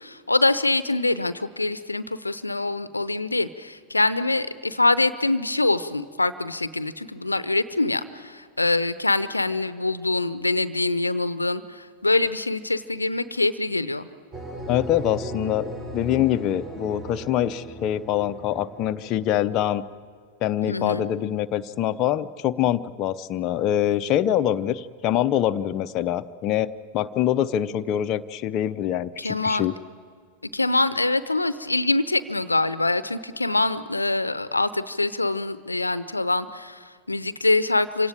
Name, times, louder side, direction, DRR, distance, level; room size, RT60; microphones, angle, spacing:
voice 1, 0.0-14.1 20.6-21.0 29.2-29.7 30.5-38.1, left 2 dB, 80° left, 15 dB, 0.7 m, -24 dB
sound 1, 14.3-19.9, right 1 dB, 30° right, 6.4 m, -37 dB
voice 2, 14.7-19.8 20.4-29.7, left 11 dB, 35° left, 8 dB, 0.6 m, -24 dB
27.0 x 17.5 x 9.0 m, 2.1 s
figure-of-eight pair, 90°, 0 cm